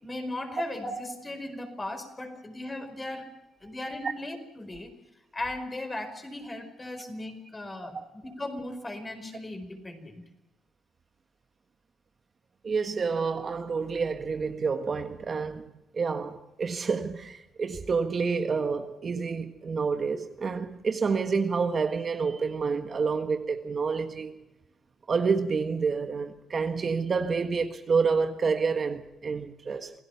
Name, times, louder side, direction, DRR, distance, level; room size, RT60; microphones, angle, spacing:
voice 1, 0.0-3.3 3.6-4.9 5.3-10.2, left 1 dB, 20° left, 4.8 m, -37 dB
voice 2, 12.6-24.4 25.1-29.9, right 5 dB, 40° right, 1.5 m, -28 dB
28.0 x 17.0 x 5.8 m
cardioid pair, 90°, 0 cm